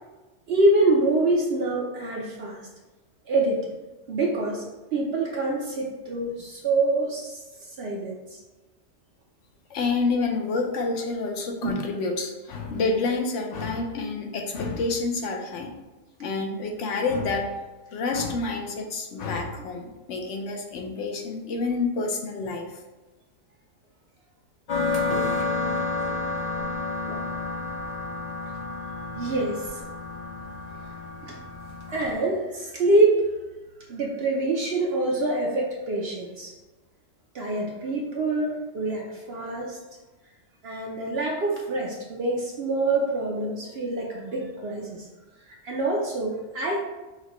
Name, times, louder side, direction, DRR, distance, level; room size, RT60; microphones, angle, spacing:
voice 1, 0.5-2.6 3.3-3.7 4.1-4.6 4.9-7.4 7.8-8.2 11.6-11.8 27.1-27.2 29.2-29.8 31.2-31.4 31.9-33.3 33.9-36.5 37.3-39.8 40.6-45.1 45.6-46.8, right 2 dB, 60° right, -2 dB, 0.7 m, -25 dB
voice 2, 9.7-15.7 16.2-17.5 17.9-22.7, left 3 dB, 70° left, 2 dB, 0.9 m, -28 dB
sound 1, 24.7-32.1, left 3 dB, 45° left, 0.5 m, -30 dB
5.6 x 2.1 x 2.9 m, 1.2 s
omnidirectional pair, 1.3 m